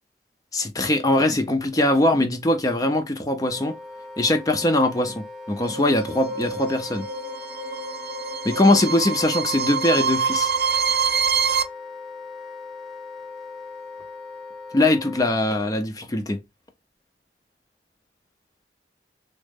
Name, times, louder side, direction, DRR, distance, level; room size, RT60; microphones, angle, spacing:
voice 1, 0.5-3.7 4.2-7.1 8.4-10.5 14.7-16.4, left 1 dB, 20° left, 0.4 m, -21 dB
Wind instrument woodwind instrument, 3.4-15.4, left 3 dB, ahead, 0.9 m, -39 dB
sound 1, 5.6-11.6, right 6 dB, 60° right, 0.5 m, -26 dB
3.6 x 2.1 x 3.4 m
head